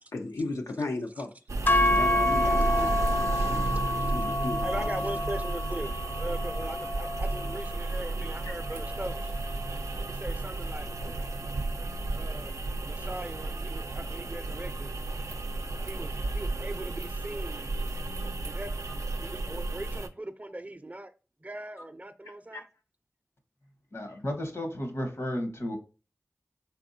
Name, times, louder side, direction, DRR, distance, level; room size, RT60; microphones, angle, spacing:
voice 1, 0.1-1.3 1.8-3.7 4.1-4.9 8.4-8.6 12.4-12.5 22.5-22.6 24.1-24.2, left 2 dB, 90° left, 0.6 m, -36 dB
sound 1, 1.5-20.1, right 2 dB, 85° right, 0.4 m, -33 dB
sound 2, 1.7-9.9, left 1 dB, 40° left, 0.3 m, -30 dB
voice 2, 4.6-9.3 10.1-10.9 12.1-14.9 15.8-17.7 18.4-18.7 19.2-21.1 21.4-22.6, right 1 dB, 30° right, 0.5 m, -40 dB
voice 3, 23.9-25.8, left 1 dB, 65° left, 1.1 m, -33 dB
4.5 x 3.5 x 2.6 m
wide cardioid pair, 45°, 5 cm